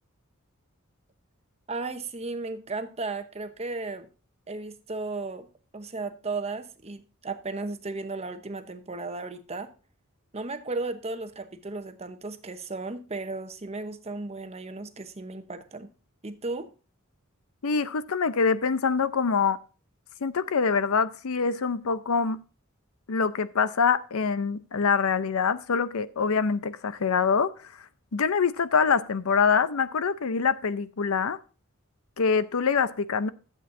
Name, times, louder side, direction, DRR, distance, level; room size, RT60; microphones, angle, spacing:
voice 1, 1.7-4.1 4.5-5.5 5.7-9.7 10.3-15.9 16.2-16.7, right 3 dB, 30° right, 0.8 m, -35 dB
voice 2, 17.6-19.6 20.2-22.4 23.1-27.7 28.1-31.4 32.2-33.3, left 5 dB, 80° left, 0.6 m, -25 dB
12.0 x 8.0 x 2.6 m
head